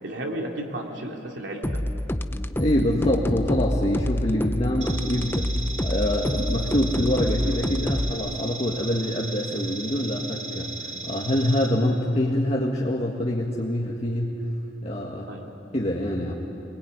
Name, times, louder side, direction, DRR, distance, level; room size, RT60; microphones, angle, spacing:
voice 1, 0.0-1.8 15.3-15.6, right 1 dB, 70° right, 0 dB, 3.0 m, -33 dB
sound 1, 1.6-8.1, left 1 dB, 10° left, 0.7 m, -27 dB
voice 2, 2.5-5.5 5.8-14.4 14.8-15.3 15.7-16.3, left 1 dB, 35° left, -3 dB, 1.8 m, -25 dB
sound 2, 4.8-11.7, right 3 dB, 40° right, 3.8 m, -36 dB
24.5 x 21.0 x 9.6 m, 2.8 s
head